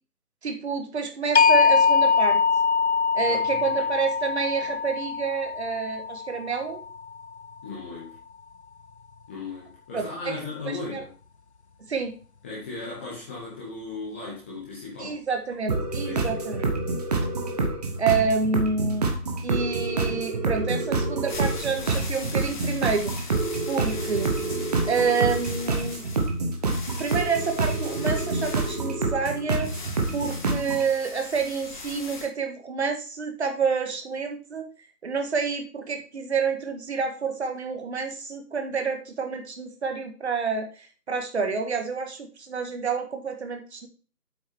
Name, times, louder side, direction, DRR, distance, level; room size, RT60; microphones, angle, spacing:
voice 1, 0.4-2.4 3.1-6.8 9.9-11.0 11.9-12.1 15.0-16.6 18.0-19.1 19.4-23.1 23.7-24.4 24.9-26.0 27.0-29.7 30.1-34.7 35.0-43.9, right 5 dB, 45° right, 5 dB, 1.9 m, -28 dB
sound 1, 1.4-7.3, left 5 dB, 45° left, 0.6 m, -23 dB
voice 2, 3.2-3.7 7.6-8.2 9.3-11.1 12.4-15.2 16.0-16.4, left 3 dB, 10° left, -6 dB, 1.0 m, -37 dB
sound 2, 15.7-30.9, right 3 dB, 25° right, 1.3 m, -27 dB
sound 3, 21.3-32.3, left 4 dB, 30° left, 1.8 m, -40 dB
8.2 x 6.7 x 4.4 m, 0.37 s
figure-of-eight pair, 150°, 47 cm